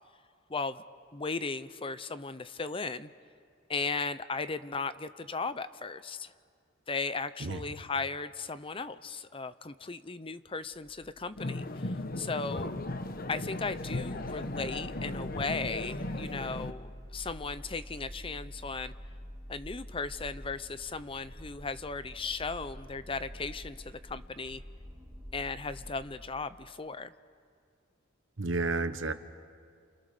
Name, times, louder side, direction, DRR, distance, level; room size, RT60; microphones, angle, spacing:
voice 1, 0.5-0.8 1.1-3.1 3.7-6.3 6.9-12.7 13.3-18.9 19.5-24.6 25.3-27.1, left 4 dB, 30° left, 13 dB, 0.7 m, -36 dB
sound 1, 10.7-26.1, equal, 15° right, 2.7 m, -48 dB
sound 2, 11.4-16.7, left 2 dB, 50° left, 1.0 m, -36 dB
voice 2, 28.4-29.1, right 3 dB, 70° right, 10 dB, 1.2 m, -31 dB
30.0 x 28.5 x 6.8 m, 2.1 s
head